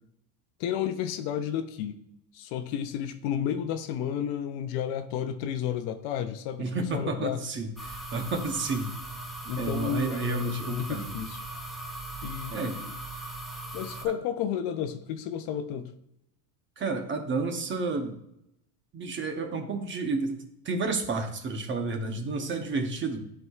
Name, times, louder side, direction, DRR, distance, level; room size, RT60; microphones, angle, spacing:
voice 1, 0.6-2.0 2.3-7.4 9.5-11.4 12.2-13.0 13.7-15.9, left 9 dB, 55° left, 0.7 m, -32 dB
voice 2, 6.6-8.9 9.4-11.1 12.5-12.8 16.8-18.2 18.9-20.4 20.6-23.2, right 3 dB, 25° right, 0.8 m, -31 dB
sound 1, 7.8-14.0, right 2 dB, ahead, 0.5 m, -39 dB
10.5 x 4.7 x 2.4 m
supercardioid pair, 145°, 48 cm